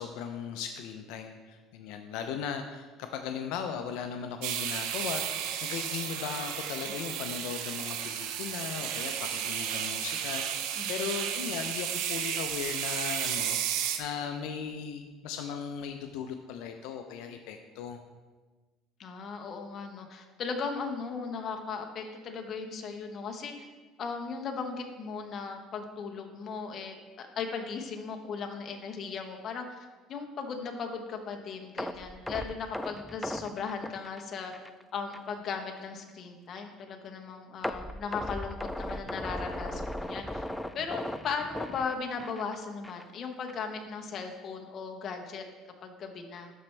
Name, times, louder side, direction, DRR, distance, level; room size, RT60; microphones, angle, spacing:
voice 1, 0.0-18.0, left 7 dB, 80° left, 6 dB, 0.5 m, -37 dB
sound 1, 4.4-14.0, right 9 dB, 80° right, 0.6 m, -33 dB
voice 2, 10.8-11.1 19.0-23.7 24.0-34.5 34.9-40.5 40.7-45.4 45.8-46.5, left 5 dB, 45° left, 3 dB, 0.9 m, -37 dB
sound 2, 31.8-34.8 35.1-35.3 35.8-35.9 37.6-42.5 42.8-43.0 43.5-43.6, left 1 dB, 5° left, 0.3 m, -37 dB
12.0 x 4.3 x 3.3 m, 1.3 s
cardioid pair, 125°, 0 cm